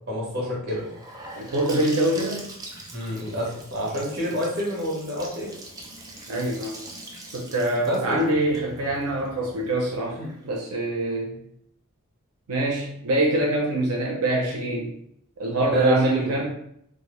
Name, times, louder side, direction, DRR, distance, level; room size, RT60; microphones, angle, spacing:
voice 1, 0.1-0.9 2.9-5.5 7.8-8.3 10.2-10.3 15.7-16.3, left 1 dB, 50° right, -3 dB, 0.8 m, -28 dB
Gurgling / Sink (filling or washing) / Bathtub (filling or washing), 0.7-10.5, right 1 dB, 15° right, 0.3 m, -42 dB
voice 2, 1.4-2.5 6.3-6.8 7.3-10.2 10.4-11.4 12.5-15.0 15.4-16.5, right 1 dB, 90° right, -2 dB, 0.5 m, -24 dB
2.0 x 2.0 x 3.0 m, 0.72 s
head